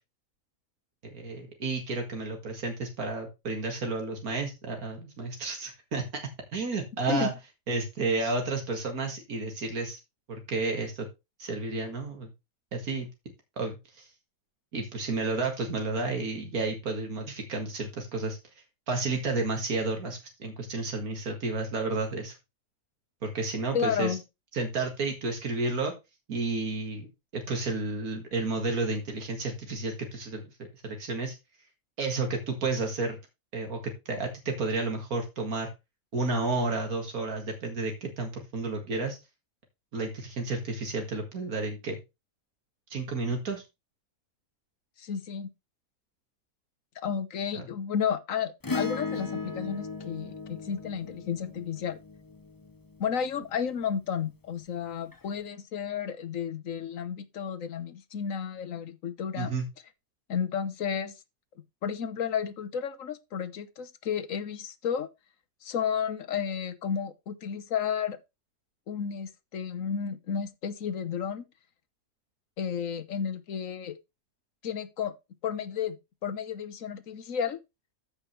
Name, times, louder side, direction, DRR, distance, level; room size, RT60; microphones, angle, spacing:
voice 1, 1.0-6.0 6.5-7.3 7.7-10.0 10.3-11.1 11.4-12.3 12.7-13.1 13.6-14.1 14.7-18.4 18.9-22.4 23.2-24.2 24.5-25.9 26.3-27.1 27.3-30.5 30.8-31.4 32.0-33.2 33.5-35.7 36.1-39.2 39.9-42.0 42.9-43.6 47.5-47.6 59.4-59.7, right 3 dB, 80° right, 2.2 m, -31 dB
voice 2, 23.7-24.2 45.0-45.5 47.0-52.0 53.0-59.5 60.3-61.1 61.8-65.1 65.6-68.2 68.9-71.4 72.6-74.0 74.6-75.1 75.4-76.0 76.2-77.6, left 7 dB, 65° left, 1.4 m, -32 dB
Acoustic guitar / Strum, 48.6-53.2 55.1-55.2, left 4 dB, 25° left, 0.5 m, -37 dB
14.0 x 5.3 x 3.2 m
omnidirectional pair, 1.5 m